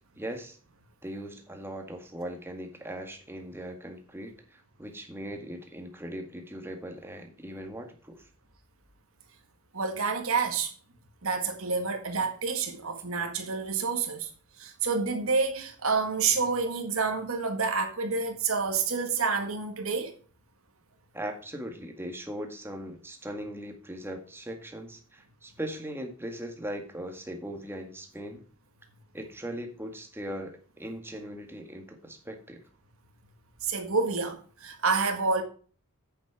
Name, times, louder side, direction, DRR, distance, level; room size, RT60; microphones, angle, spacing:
voice 1, 0.2-0.6 1.0-8.3 21.1-28.4 29.1-32.6, equal, 10° right, 1.8 m, -39 dB
voice 2, 9.7-10.7 11.2-14.3 14.6-20.1 33.6-35.4, right 4 dB, 70° right, 1.7 m, -28 dB
8.6 x 7.5 x 4.8 m
head